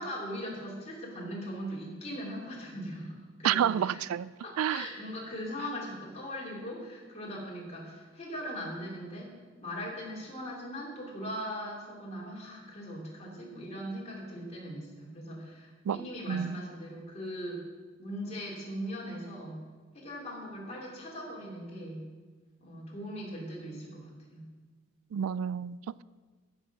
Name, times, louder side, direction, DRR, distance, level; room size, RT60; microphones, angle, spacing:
voice 1, 0.0-4.0 4.4-9.3 9.6-17.6 18.0-19.6 19.9-22.0 22.6-24.5, equal, 30° left, 3.4 m, -40 dB
voice 2, 3.4-4.8 15.9-16.0 16.3-16.6 25.1-26.0, right 9 dB, 85° right, 0.3 m, -30 dB
15.5 x 6.5 x 6.1 m
head